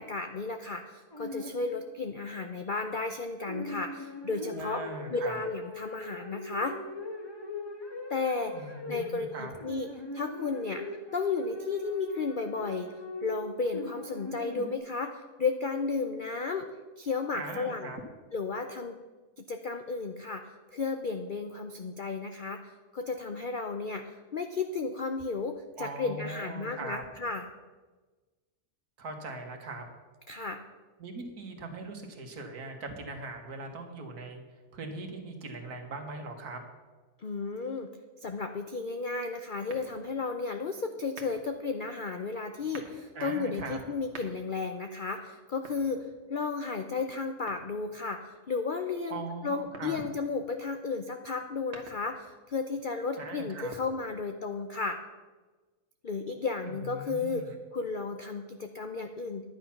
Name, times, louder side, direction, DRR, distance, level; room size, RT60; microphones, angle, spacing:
voice 1, 0.0-4.8 5.1-6.8 8.1-9.9 10.1-10.8 11.1-12.9 13.2-16.7 17.0-17.9 18.3-19.0 19.4-27.5 30.3-30.6 37.2-37.9 38.2-55.0 56.0-59.4, left 4 dB, 65° left, 6 dB, 0.4 m, -33 dB
sound 1, 1.1-2.0 3.4-14.8, left 2 dB, 20° left, 1.0 m, -41 dB
voice 2, 4.5-5.4 8.5-9.5 17.3-18.0 25.8-27.0 29.0-29.8 31.0-34.4 34.7-36.6 43.1-43.8 49.1-50.0 53.2-53.7 56.7-57.6, right 3 dB, 70° right, 4 dB, 2.0 m, -40 dB
sound 2, 39.7-40.3 41.0-41.6 42.5-43.0 43.9-44.7 45.5-46.4 47.5-48.1 49.5-50.1 51.4-52.3, right 3 dB, 45° right, 1.5 m, -49 dB
10.5 x 9.2 x 5.8 m, 1.3 s
omnidirectional pair, 1.7 m